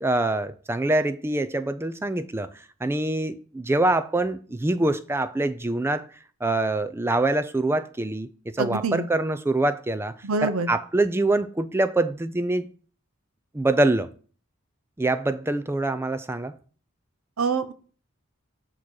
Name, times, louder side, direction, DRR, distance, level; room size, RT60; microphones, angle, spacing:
voice 1, 0.0-2.5 2.8-6.0 6.4-10.1 10.4-12.7 13.5-14.1 15.0-16.5, right 2 dB, 10° right, 0.3 m, -24 dB
voice 2, 8.6-9.1 10.2-10.7 17.4-17.7, right 4 dB, 80° right, 0.7 m, -25 dB
8.3 x 3.0 x 6.3 m
head